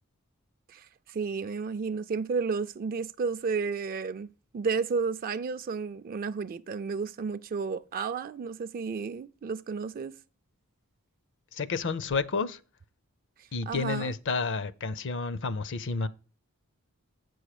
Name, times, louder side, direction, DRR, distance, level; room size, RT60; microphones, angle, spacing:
voice 1, 0.7-10.2 13.4-14.2, right 5 dB, 40° right, 0.4 m, -32 dB
voice 2, 11.5-12.6 13.5-16.1, left 4 dB, 55° left, 0.6 m, -30 dB
8.4 x 6.2 x 4.9 m
head